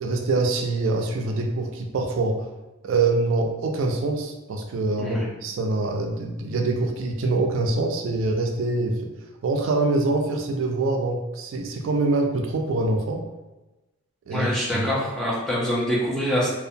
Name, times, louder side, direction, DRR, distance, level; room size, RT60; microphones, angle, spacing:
voice 1, 0.0-2.5 2.8-9.1 9.4-13.2 14.3-14.9, right 3 dB, 70° right, 3 dB, 0.3 m, -24 dB
voice 2, 14.3-16.5, equal, 5° left, -7 dB, 0.5 m, -25 dB
2.6 x 2.1 x 2.6 m, 1.0 s
head